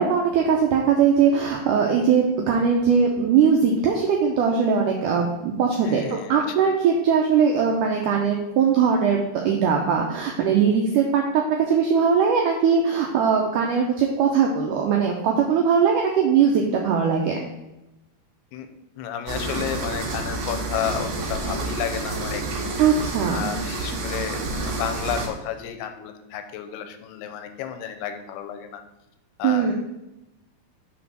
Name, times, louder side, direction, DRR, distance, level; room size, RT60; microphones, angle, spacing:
voice 1, 0.0-17.4 22.8-23.5 29.4-29.7, right 6 dB, 90° right, 1 dB, 1.8 m, -20 dB
voice 2, 5.8-6.7 18.5-18.7 19.0-22.8 23.3-28.8 29.4-29.7, left 9 dB, 85° left, 7 dB, 2.6 m, -32 dB
sound 1, 19.3-25.3, right 2 dB, 75° right, 3.1 m, -29 dB
7.4 x 3.5 x 6.0 m, 0.95 s
omnidirectional pair, 4.6 m